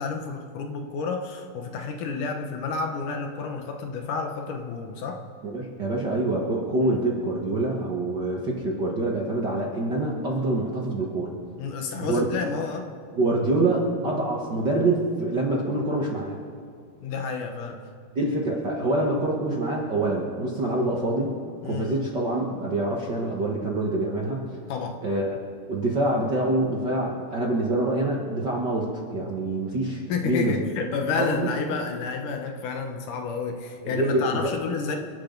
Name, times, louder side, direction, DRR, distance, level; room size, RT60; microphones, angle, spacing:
voice 1, 0.0-5.2 6.8-6.9 11.6-12.9 17.0-17.8 21.6-22.1 24.7-25.0 30.1-35.0, left 5 dB, 70° left, 4 dB, 2.5 m, -30 dB
voice 2, 5.4-11.3 12.0-12.3 13.2-16.4 18.1-21.4 21.6-24.4 25.0-25.4 25.7-30.5 31.2-31.5 33.8-34.5, right 2 dB, 45° right, -2 dB, 1.5 m, -26 dB
29.0 x 11.5 x 4.0 m, 2.3 s
omnidirectional pair, 4.1 m